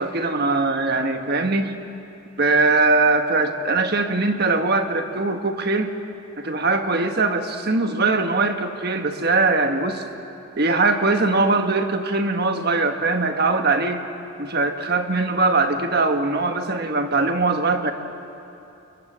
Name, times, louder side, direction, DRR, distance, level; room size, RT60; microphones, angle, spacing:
voice 1, 0.0-1.7 2.4-5.9 6.4-10.0 10.6-14.0 14.4-17.9, right 3 dB, 45° right, 6 dB, 1.4 m, -21 dB
29.5 x 21.0 x 7.5 m, 2.8 s
head